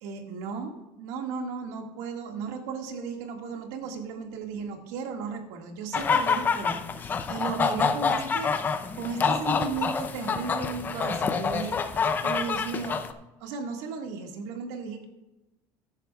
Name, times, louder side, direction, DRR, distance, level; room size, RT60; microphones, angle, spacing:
voice 1, 0.0-13.0 13.4-15.1, right 5 dB, 85° right, 3 dB, 1.9 m, -35 dB
sound 1, 5.9-13.1, left 5 dB, 20° left, 0.6 m, -27 dB
15.5 x 10.5 x 2.3 m, 1.0 s
cardioid pair, 160°, 9 cm